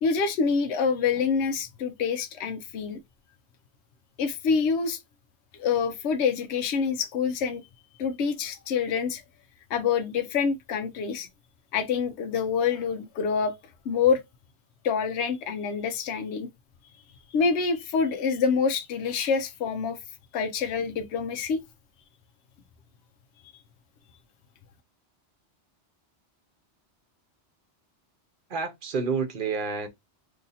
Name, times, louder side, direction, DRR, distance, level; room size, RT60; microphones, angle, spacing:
voice 1, 0.0-3.0 4.2-5.0 5.6-7.6 8.0-9.2 9.7-11.3 11.7-13.5 13.9-14.2 14.8-16.5 17.3-20.0 20.3-21.6, left 6 dB, 75° left, 0.9 m, -26 dB
voice 2, 28.5-29.9, right 5 dB, 50° right, 0.9 m, -29 dB
2.7 x 2.6 x 3.9 m
omnidirectional pair, 1.2 m